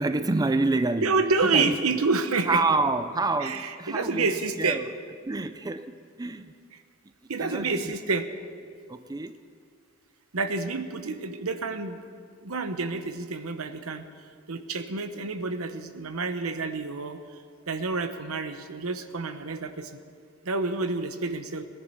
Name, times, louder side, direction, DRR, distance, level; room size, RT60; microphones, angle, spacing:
voice 1, 0.0-1.1 1.4-2.0 2.5-4.9 5.2-6.5 7.4-7.9 8.9-9.3, right 3 dB, 20° right, 11 dB, 0.4 m, -28 dB
voice 2, 1.0-2.6 3.4-4.8 7.3-8.3 10.3-12.0 12.4-14.0 14.5-17.2 17.7-19.9 20.4-21.7, right 4 dB, 85° right, 9 dB, 1.0 m, -28 dB
18.5 x 11.0 x 7.0 m, 2.2 s
head